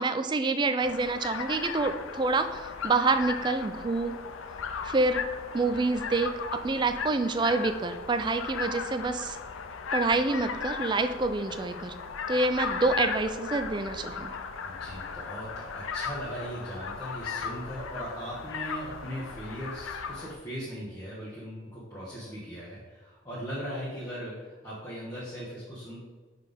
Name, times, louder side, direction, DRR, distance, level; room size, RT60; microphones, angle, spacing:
voice 1, 0.0-4.2 4.8-5.2 5.5-6.3 6.6-9.4 9.9-11.9 12.3-14.3, right 3 dB, 25° right, 9 dB, 0.3 m, -27 dB
sound 1, 0.8-20.3, left 6 dB, 85° left, 0.5 m, -37 dB
voice 2, 14.6-26.0, equal, 20° left, -8 dB, 1.2 m, -39 dB
5.5 x 4.1 x 5.2 m, 1.4 s
head